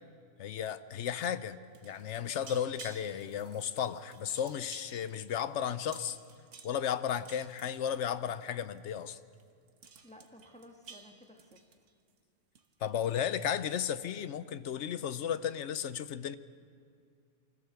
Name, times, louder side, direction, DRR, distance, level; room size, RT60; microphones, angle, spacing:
voice 1, 0.4-1.6 1.8-6.2 6.6-9.2 12.8-16.4, left 9 dB, 75° left, 14 dB, 1.0 m, -34 dB
sound 1, 1.6-8.4 8.7-9.0 9.3-9.4 9.7-12.2 12.5-12.9, right 5 dB, 85° right, 1.5 m, -53 dB
voice 2, 10.0-11.6, left 1 dB, 5° left, 3 dB, 1.4 m, -55 dB
25.0 x 15.0 x 6.9 m, 2.3 s
omnidirectional pair, 1.2 m